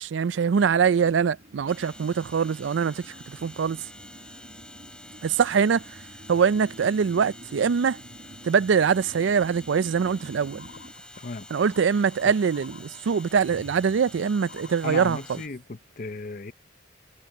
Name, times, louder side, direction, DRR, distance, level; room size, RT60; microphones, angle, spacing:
voice 1, 0.0-3.8 5.2-5.8 6.3-8.0 8.4-10.7 11.5-15.2, right 6 dB, 70° right, 0.4 m, -23 dB
sound 1, 0.5-10.9, right 1 dB, 40° right, 1.3 m, -49 dB
sound 2, 1.7-15.5, left 1 dB, 5° left, 5.5 m, -48 dB
sound 3, 10.0-15.3, left 3 dB, 65° left, 2.9 m, -50 dB
voice 2, 11.2-11.5 12.2-12.3 14.8-16.5, left 3 dB, 45° left, 0.7 m, -35 dB
head